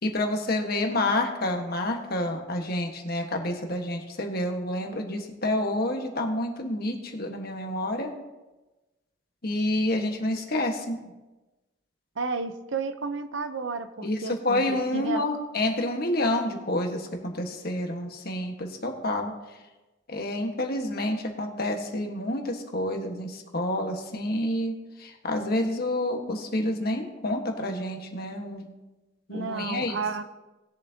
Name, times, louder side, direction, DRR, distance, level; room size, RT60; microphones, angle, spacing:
voice 1, 0.0-8.1 9.4-11.0 14.0-19.3 20.1-28.7 29.3-30.0, left 1 dB, 50° left, 3 dB, 1.4 m, -28 dB
voice 2, 12.2-15.2 29.3-30.2, right 4 dB, 70° right, 10 dB, 0.7 m, -32 dB
19.5 x 7.3 x 2.8 m, 1.1 s
head